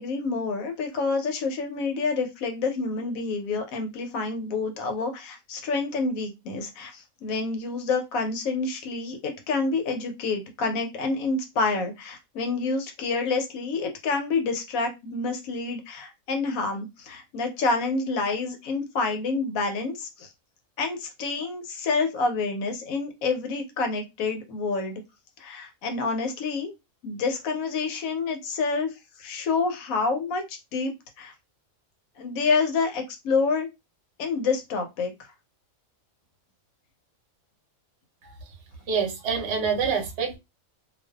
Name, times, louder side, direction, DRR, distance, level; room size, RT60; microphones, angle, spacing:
voice 1, 0.0-20.3 20.8-25.0 25.4-26.7 27.0-31.3 32.2-33.7 34.2-35.3, left 4 dB, 85° left, 5 dB, 1.1 m, -28 dB
voice 2, 38.9-40.4, right 6 dB, 60° right, 2 dB, 0.9 m, -26 dB
2.5 x 2.3 x 2.2 m, 0.22 s
omnidirectional pair, 1.4 m